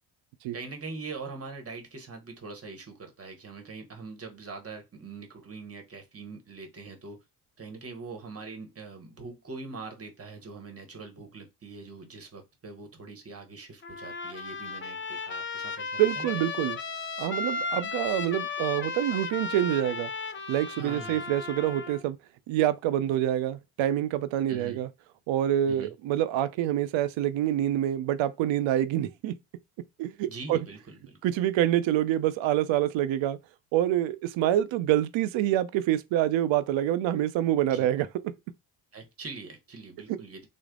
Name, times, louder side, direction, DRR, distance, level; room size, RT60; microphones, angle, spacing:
voice 1, 0.5-7.2 7.6-16.3 20.8-21.3 24.5-24.8 25.7-25.9 30.3-31.2 37.7-37.9 38.9-40.5, right 4 dB, 30° right, 1.1 m, -43 dB
Trumpet, 13.8-22.0, left 4 dB, 25° left, 0.7 m, -35 dB
voice 2, 16.0-16.8 17.2-20.1 20.5-22.2 22.5-24.9 25.3-29.4 30.0-30.6 31.2-33.4 33.7-38.1 40.1-40.2, right 12 dB, 65° right, 0.6 m, -26 dB
3.3 x 2.0 x 3.7 m
supercardioid pair, 65°, 49 cm